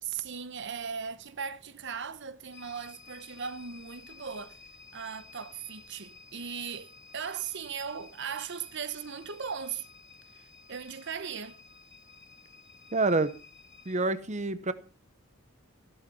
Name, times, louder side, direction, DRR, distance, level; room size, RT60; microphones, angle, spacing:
voice 1, 0.0-4.6 4.9-9.9 10.3-11.6, right 6 dB, 55° right, 0.9 m, -38 dB
sound 1, 2.5-14.0, left 5 dB, 55° left, 2.6 m, -54 dB
voice 2, 12.9-13.3 13.9-14.7, right 3 dB, 35° right, 0.9 m, -27 dB
15.5 x 12.0 x 5.5 m
head